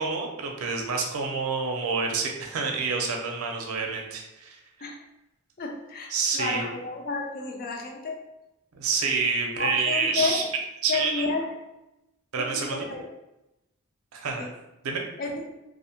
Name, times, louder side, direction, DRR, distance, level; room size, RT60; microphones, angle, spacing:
voice 1, 0.0-4.6 6.1-6.6 8.7-10.4 10.8-11.3 12.3-12.9 14.1-14.4 14.8-15.0, right 4 dB, 85° right, 2 dB, 0.5 m, -28 dB
voice 2, 5.6-8.2 9.6-10.4 10.9-11.5 12.4-13.0 14.4-14.5 15.2-15.6, left 3 dB, 40° left, 1 dB, 0.4 m, -31 dB
2.5 x 2.0 x 2.8 m, 0.92 s
head